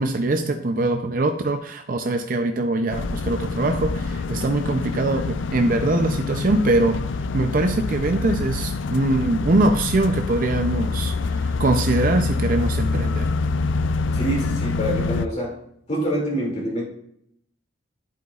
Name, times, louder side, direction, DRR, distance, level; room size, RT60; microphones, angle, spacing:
voice 1, 0.0-7.0 7.3-13.3, right 2 dB, 45° right, 6 dB, 0.5 m, -22 dB
sound 1, 2.9-15.3, left 4 dB, 70° left, 0.4 m, -26 dB
voice 2, 14.1-15.6 15.9-16.8, right 1 dB, 35° left, -3 dB, 2.5 m, -26 dB
11.5 x 8.0 x 2.4 m, 0.70 s
head